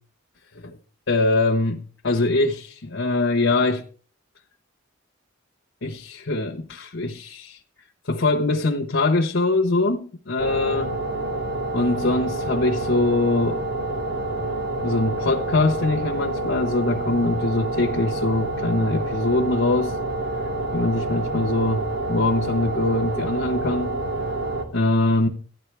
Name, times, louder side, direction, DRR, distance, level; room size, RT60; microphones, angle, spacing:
voice 1, 1.1-3.8 5.8-7.6 8.0-10.9 11.7-13.6 14.8-19.9 20.7-24.0 24.7-25.3, left 2 dB, 65° left, 1.1 m, -23 dB
sound 1, 10.4-24.6, right 2 dB, 55° right, 2.3 m, -28 dB
13.5 x 10.5 x 3.4 m
head